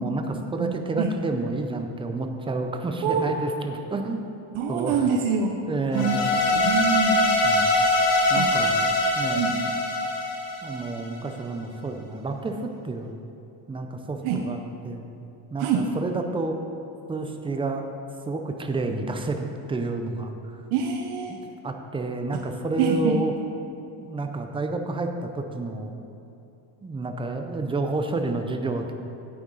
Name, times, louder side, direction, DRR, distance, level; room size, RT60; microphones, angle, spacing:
voice 1, 0.0-4.2 4.7-5.1 5.7-6.4 7.4-7.7 8.3-8.9 9.1-9.5 10.6-13.1 13.7-14.6 14.8-15.0 15.5-16.6 17.1-17.9 18.3-20.6 21.3-21.4 21.6-23.3 24.0-26.0 26.8-28.9, right 3 dB, 10° right, 5 dB, 0.4 m, -29 dB
voice 2, 0.6-1.1 3.0-3.3 4.5-5.6 5.9-6.1 6.6-7.2 8.3-8.5 9.3-9.6 14.2-14.4 15.6-15.8 20.7-21.3 22.8-23.2, right 6 dB, 75° right, 2 dB, 0.9 m, -25 dB
sound 1, 5.9-11.1, left 2 dB, 85° left, 2.0 m, -23 dB
9.3 x 9.1 x 3.9 m, 2.8 s
cardioid pair, 140°, 50 cm